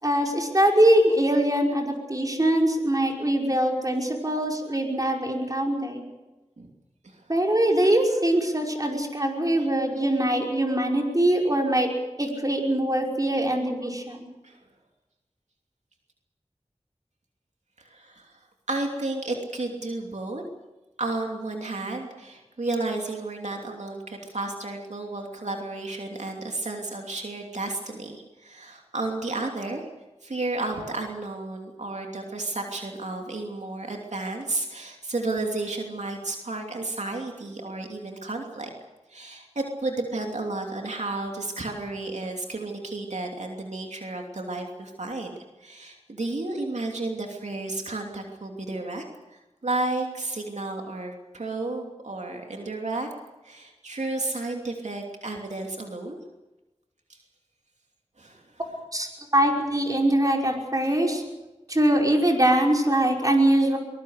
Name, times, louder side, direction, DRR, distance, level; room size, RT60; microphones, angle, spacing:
voice 1, 0.0-6.0 7.3-11.9 12.2-14.3 58.9-61.2 61.7-63.8, right 1 dB, 30° right, 1 dB, 5.4 m, -23 dB
voice 2, 17.8-18.4 18.7-20.4 21.0-29.9 30.2-38.7 39.1-49.0 49.3-53.1 53.4-56.2 57.1-57.2 58.2-58.4 60.8-60.9 61.7-61.8, right 2 dB, 85° right, 1 dB, 2.9 m, -32 dB
23.5 x 21.0 x 6.6 m, 1.0 s
wide cardioid pair, 50°, 12 cm